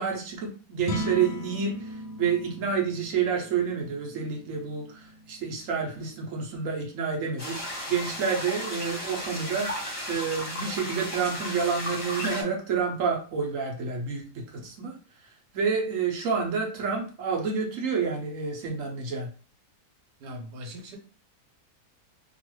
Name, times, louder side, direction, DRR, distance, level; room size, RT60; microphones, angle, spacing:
voice 1, 0.0-7.6 7.9-14.9 15.5-19.3, right 6 dB, 60° right, 0 dB, 1.0 m, -29 dB
sound 1, 0.8-7.2, left 1 dB, 70° left, 0.8 m, -39 dB
sound 2, 7.4-12.4, left 1 dB, 30° left, 0.8 m, -35 dB
voice 2, 20.2-21.0, equal, 80° right, 2 dB, 1.4 m, -40 dB
3.0 x 2.3 x 3.0 m, 0.37 s
omnidirectional pair, 1.7 m